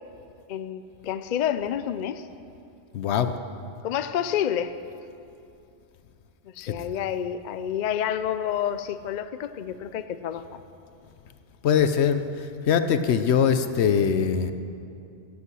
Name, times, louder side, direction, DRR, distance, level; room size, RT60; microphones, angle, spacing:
voice 1, 0.5-2.3 3.8-4.7 6.5-10.6, left 9 dB, 60° left, 12 dB, 0.5 m, -29 dB
voice 2, 2.9-3.3 6.7-6.8 11.6-12.2 12.7-14.5, left 7 dB, 75° left, 10 dB, 0.9 m, -22 dB
15.5 x 8.4 x 6.2 m, 2.6 s
omnidirectional pair, 1.1 m